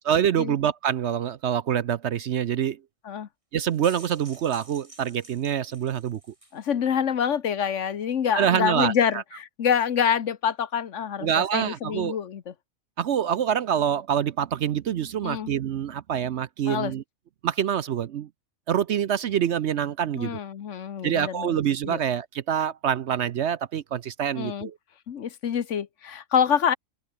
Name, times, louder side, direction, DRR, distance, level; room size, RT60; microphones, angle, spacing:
voice 1, 0.1-2.8 3.5-6.2 8.3-9.2 11.2-12.2 13.0-17.0 17.4-18.3 18.7-20.4 21.0-24.8, right 9 dB, 60° right, 0.9 m, -26 dB
sound 1, 3.5-6.6, right 1 dB, 20° right, 4.8 m, -49 dB
voice 2, 6.5-12.5 15.2-15.5 16.7-16.9 20.2-21.5 21.9-22.0 24.4-24.7 25.1-26.8, left 8 dB, 60° left, 1.2 m, -26 dB
open air
omnidirectional pair, 1.5 m